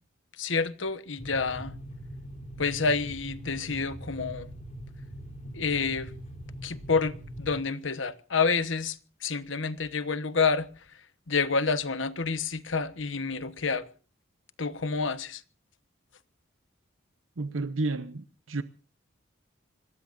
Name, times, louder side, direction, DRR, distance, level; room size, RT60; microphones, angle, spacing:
voice 1, 0.4-1.7 2.6-4.5 5.5-6.1 6.6-9.0 9.2-10.7 11.3-13.8 14.6-15.4, left 4 dB, 70° left, 1.2 m, -28 dB
sound 1, 1.2-7.6, equal, 35° left, 3.4 m, -42 dB
voice 2, 17.4-18.6, right 3 dB, 80° right, 0.9 m, -31 dB
26.0 x 19.5 x 2.6 m
head